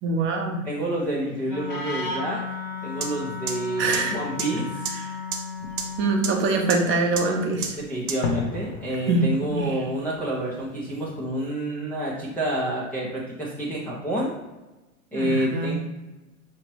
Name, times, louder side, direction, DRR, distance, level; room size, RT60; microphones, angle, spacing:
voice 1, 0.0-0.6 3.8-4.2 5.0-5.1 6.0-7.8 9.1-9.8 15.1-15.7, right 3 dB, 30° right, 2 dB, 0.7 m, -24 dB
voice 2, 0.6-2.4 2.8-4.9 7.8-14.3 15.1-15.7, right 1 dB, 5° left, -7 dB, 0.4 m, -28 dB
Wind instrument woodwind instrument, 1.4-6.3, left 4 dB, 25° left, 0.8 m, -34 dB
sound 1, 3.0-3.1 3.5-3.6 3.9-4.0 4.4-4.5 4.8-4.9 5.3-5.4 5.8-5.9 6.2-6.3 6.7-6.8 7.2-7.3 7.6-7.7 8.1-8.2, right 7 dB, 85° right, 0.9 m, -27 dB
Fireworks, 5.6-11.3, left 3 dB, 80° left, 0.9 m, -38 dB
4.9 x 3.0 x 3.0 m, 1.1 s
hypercardioid pair, 105°, 42 cm